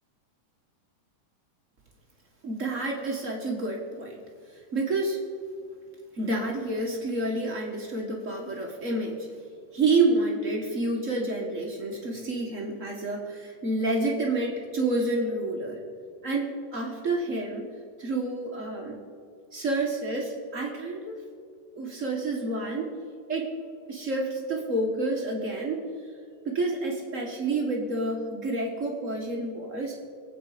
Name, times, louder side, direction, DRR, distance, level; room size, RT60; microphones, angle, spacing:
voice 1, 2.4-4.2 4.5-5.2 6.1-9.3 9.7-15.8 16.2-17.7 18.0-19.0 19.5-21.2 21.7-22.9 23.3-23.5 23.9-25.8 26.4-30.0, right 2 dB, 40° right, -1 dB, 1.0 m, -29 dB
23.5 x 9.0 x 5.0 m, 2.2 s
omnidirectional pair, 3.8 m